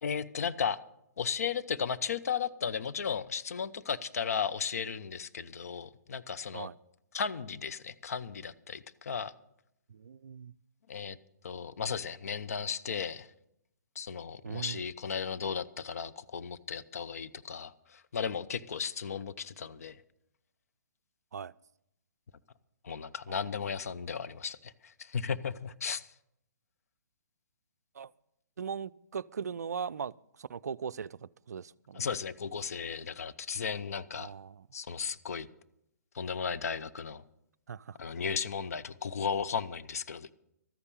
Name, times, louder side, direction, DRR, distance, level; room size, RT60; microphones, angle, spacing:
voice 1, 0.0-0.8 1.2-6.7 7.1-9.3 10.9-11.2 11.4-13.3 14.0-20.0 22.8-26.1 31.9-34.3 34.7-35.5 36.1-37.2 38.0-40.3, left 6 dB, 55° left, 13 dB, 0.7 m, -35 dB
voice 2, 9.9-10.5 14.4-14.8 21.3-21.5 23.3-23.4 27.9-28.1 28.6-32.2 34.2-34.7 37.7-38.0, right 7 dB, 65° right, 18 dB, 0.4 m, -39 dB
13.5 x 9.7 x 6.7 m, 0.78 s
figure-of-eight pair, 130°, 10 cm